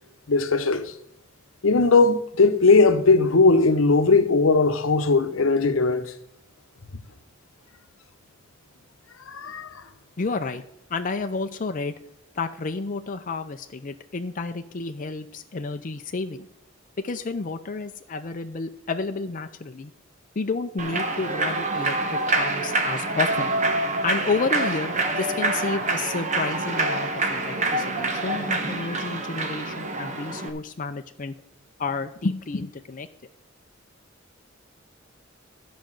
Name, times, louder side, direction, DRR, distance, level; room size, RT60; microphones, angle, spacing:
voice 1, 0.3-0.9 1.6-6.1 9.3-9.8, left 3 dB, 80° left, 0.9 m, -19 dB
voice 2, 10.2-10.6 10.9-11.9 12.3-16.5 17.0-19.9 20.4-23.5 24.0-31.3 31.8-33.1, left 4 dB, 40° left, 0.6 m, -30 dB
Human voice / Clapping / Cheering, 20.8-30.5, right 2 dB, 35° right, 1.2 m, -26 dB
12.0 x 5.2 x 7.5 m
head